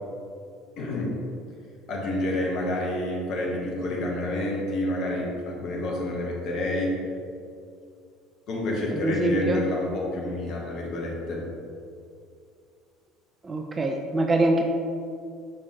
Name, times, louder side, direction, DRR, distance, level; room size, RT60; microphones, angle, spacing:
voice 1, 0.8-1.1 1.9-7.0 8.5-11.4, left 1 dB, 50° left, -2 dB, 1.2 m, -28 dB
voice 2, 8.9-9.7 13.4-14.6, right 1 dB, 25° right, 3 dB, 0.4 m, -24 dB
6.4 x 5.5 x 3.0 m, 2.4 s
figure-of-eight pair, 60°, 0 cm